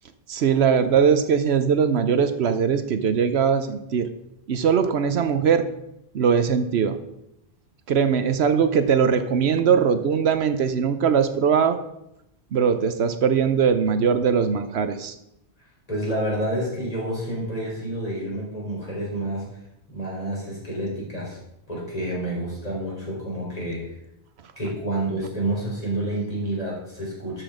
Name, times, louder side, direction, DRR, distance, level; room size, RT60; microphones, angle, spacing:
voice 1, 0.3-4.1 4.5-5.7 6.1-7.0 7.9-11.8 12.5-15.2, right 7 dB, 75° right, 10 dB, 1.0 m, -21 dB
voice 2, 15.9-19.5 19.9-21.4 21.7-23.9 24.6-27.4, right 1 dB, 35° left, -5 dB, 4.3 m, -29 dB
12.5 x 6.3 x 4.9 m, 0.83 s
omnidirectional pair, 1.1 m